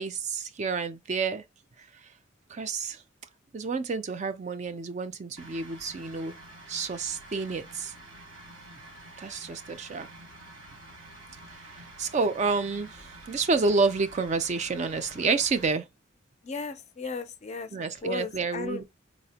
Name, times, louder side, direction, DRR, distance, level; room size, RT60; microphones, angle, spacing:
voice 1, 0.0-1.4 2.0-2.1 2.5-3.0 3.5-6.3 6.7-7.9 9.2-10.1 11.7-15.9 17.7-18.8, right 4 dB, 35° right, 0.4 m, -29 dB
sound 1, 5.4-15.7, right 1 dB, 85° right, 1.2 m, -48 dB
voice 2, 16.4-17.7 18.0-18.8, left 4 dB, 35° left, 0.4 m, -35 dB
4.0 x 2.1 x 2.7 m
head